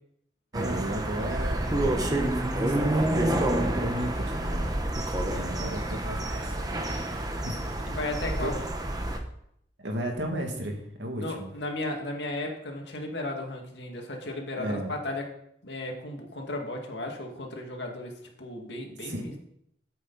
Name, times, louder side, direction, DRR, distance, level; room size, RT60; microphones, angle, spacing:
sound 1, 0.5-9.2, right 1 dB, 20° right, 1.1 m, -28 dB
voice 1, 0.5-4.7 5.3-7.0 7.3-7.6 8.4-8.5 9.8-11.5 14.6-14.9 19.0-19.4, right 1 dB, 85° right, 2 dB, 2.3 m, -35 dB
voice 2, 5.6-6.0 7.9-8.6 11.2-15.3 15.6-19.4, left 2 dB, 75° left, 1 dB, 2.2 m, -35 dB
13.5 x 8.3 x 4.2 m, 0.74 s
head